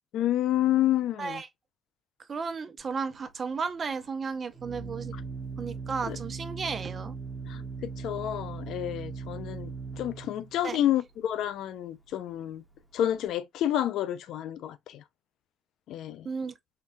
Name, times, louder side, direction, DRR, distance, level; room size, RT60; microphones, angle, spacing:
voice 1, 0.1-1.4 6.1-6.2 7.4-12.6 12.9-15.0 15.9-16.3, left 12 dB, 80° left, 0.4 m, -29 dB
voice 2, 2.3-5.1 5.6-7.1 10.6-10.8 16.2-16.5, right 5 dB, 45° right, 0.5 m, -34 dB
Organ, 2.8-13.3, right 5 dB, 5° left, 0.9 m, -40 dB
3.7 x 2.2 x 2.5 m
cardioid pair, 90°, 0 cm